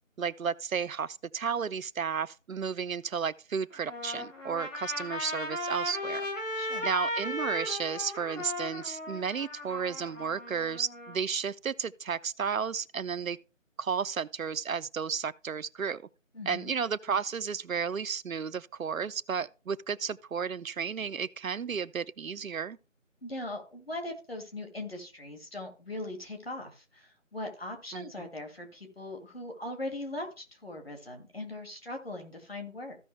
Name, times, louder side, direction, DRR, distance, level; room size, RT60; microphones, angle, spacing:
voice 1, 0.2-6.3 6.8-13.4 13.8-16.0 16.5-22.8 27.9-28.3, right 6 dB, 80° right, 0.6 m, -33 dB
Trumpet, 3.7-11.2, left 1 dB, 70° left, 3.0 m, -36 dB
voice 2, 6.6-6.9 16.3-16.7 23.2-33.0, left 1 dB, 45° left, 2.1 m, -40 dB
15.0 x 5.4 x 3.2 m
figure-of-eight pair, 175°, 40 cm